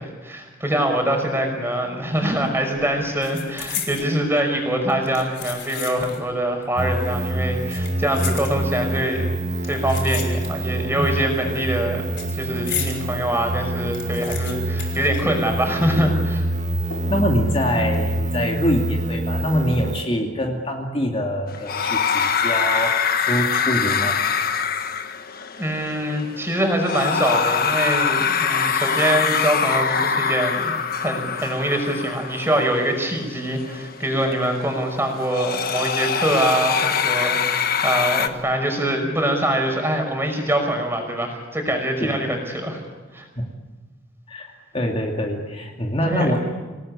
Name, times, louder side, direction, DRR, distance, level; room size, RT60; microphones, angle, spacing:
voice 1, 0.0-9.3 9.6-12.0 12.3-16.5 25.6-30.7 31.0-42.8 43.1-43.3 46.0-46.3, right 1 dB, 15° right, 3 dB, 5.7 m, -24 dB
sound 1, 2.2-2.4 2.7-4.1 4.9-6.3 6.6-6.7 7.5-8.9 9.6-10.8 11.1-13.0 13.4-13.5 13.7-15.9 16.1-16.2 16.9-17.3 17.7-18.0, left 8 dB, 80° left, 4.8 m, -34 dB
sound 2, 6.8-20.0, right 1 dB, 45° right, 1.4 m, -26 dB
voice 2, 17.1-24.2 42.0-42.1 43.4-43.5 44.3-46.4, equal, 30° left, 1 dB, 2.6 m, -24 dB
sound 3, 21.5-38.3, left 6 dB, 55° left, 1.5 m, -24 dB
27.0 x 19.0 x 9.8 m, 1.3 s
head